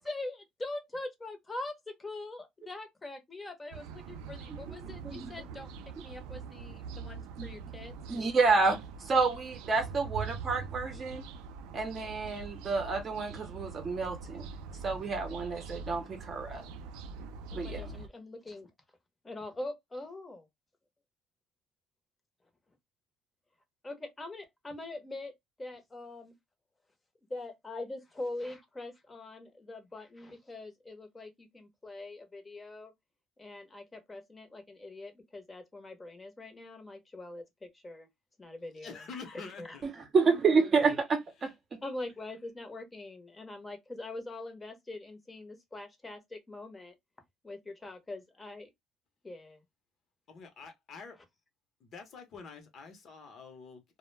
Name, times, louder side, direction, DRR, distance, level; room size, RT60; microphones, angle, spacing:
voice 1, 0.0-5.7 6.0-8.0 17.5-18.7 19.2-20.5 23.8-26.3 27.3-32.9 33.4-38.1 38.4-39.8 41.8-46.9 47.4-48.7 49.2-49.6, left 2 dB, 15° left, 0.8 m, -43 dB
sound 1, 3.7-18.1, right 5 dB, 85° right, 0.3 m, -43 dB
voice 2, 8.1-11.2 11.7-14.5 14.8-16.6 17.5-17.9 39.8-41.5, right 4 dB, 35° right, 0.7 m, -29 dB
voice 3, 38.8-39.8 50.3-51.1 51.8-54.0, left 5 dB, 50° left, 0.8 m, -47 dB
2.2 x 2.1 x 3.1 m
cardioid pair, 115°, 0 cm